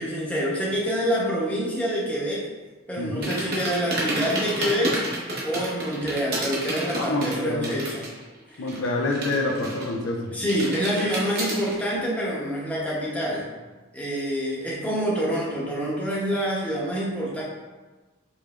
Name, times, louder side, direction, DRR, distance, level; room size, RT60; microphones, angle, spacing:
voice 1, 0.0-2.4 2.9-5.0 5.4-8.0 8.5-8.6 10.3-13.4 13.9-17.4, equal, 5° left, -6 dB, 0.8 m, -26 dB
voice 2, 3.0-3.3 6.9-7.8 8.6-10.3, left 2 dB, 65° left, 1 dB, 0.5 m, -27 dB
sound 1, 3.2-8.2 8.5-10.1 10.5-11.7, right 1 dB, 45° right, 0.9 m, -30 dB
5.1 x 3.2 x 2.4 m, 1.2 s
head